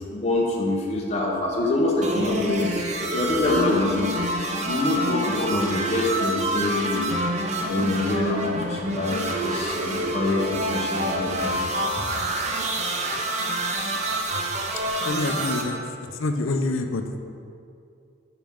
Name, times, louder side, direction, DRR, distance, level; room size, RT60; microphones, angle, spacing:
voice 1, 0.0-2.7 3.1-4.1 4.7-7.2 7.7-11.7, left 2 dB, 30° left, -3 dB, 0.9 m, -25 dB
sound 1, 2.0-15.6, right 1 dB, 35° right, 0.6 m, -27 dB
voice 2, 15.1-15.8 16.2-17.0, left 2 dB, 80° left, 6 dB, 0.6 m, -26 dB
9.0 x 5.9 x 3.6 m, 2.5 s
head